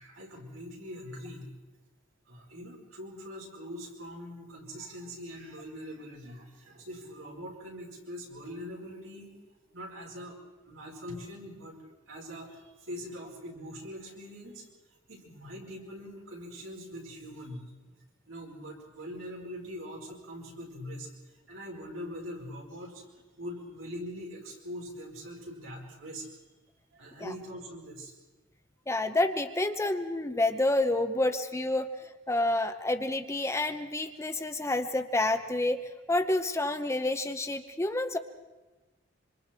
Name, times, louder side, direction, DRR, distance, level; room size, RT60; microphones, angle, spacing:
voice 1, 0.0-1.5 2.3-9.3 9.7-10.4 10.6-11.8 12.1-14.7 15.1-17.7 18.3-21.1 21.5-23.0 23.4-26.3 26.9-28.1 31.9-32.1, equal, 75° right, -1 dB, 5.0 m, -42 dB
voice 2, 28.9-38.2, left 2 dB, 15° left, 8 dB, 0.8 m, -29 dB
26.5 x 26.0 x 4.5 m, 1.1 s
head